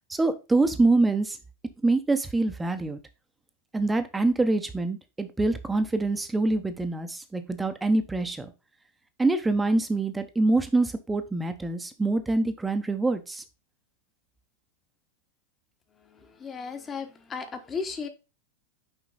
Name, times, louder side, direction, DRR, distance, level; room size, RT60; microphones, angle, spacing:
voice 1, 0.1-1.4 1.8-3.0 3.7-8.5 9.2-13.4, right 2 dB, 10° right, 1.0 m, -25 dB
voice 2, 16.4-18.1, left 5 dB, 20° left, 1.3 m, -34 dB
6.3 x 5.0 x 4.0 m
figure-of-eight pair, 90°, 0 cm